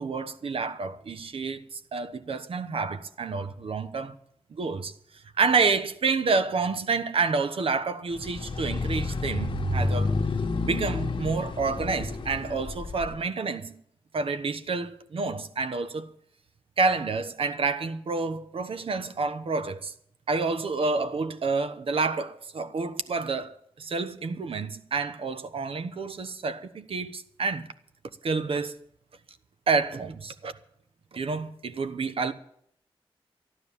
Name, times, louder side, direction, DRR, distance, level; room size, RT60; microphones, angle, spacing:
voice 1, 0.0-4.1 4.5-4.9 5.4-10.1 10.6-13.7 14.1-16.1 16.8-19.9 20.3-27.7 28.2-28.7 29.7-30.5 31.1-32.3, right 4 dB, 70° right, 1.1 m, -29 dB
sound 1, 8.1-13.1, left 3 dB, 55° left, 1.4 m, -30 dB
13.5 x 11.5 x 7.3 m
wide cardioid pair, 120°, 10 cm